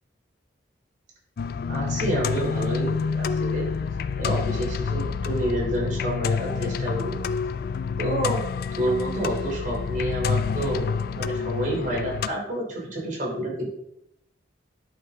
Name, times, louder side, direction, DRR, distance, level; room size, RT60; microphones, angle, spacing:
sound 1, 1.4-12.3, left 5 dB, 50° left, 0.3 m, -28 dB
voice 1, 1.7-3.7 4.2-7.1 8.0-8.4 8.7-13.7, right 1 dB, 45° right, -4 dB, 3.5 m, -28 dB
11.0 x 5.5 x 3.7 m, 0.79 s
head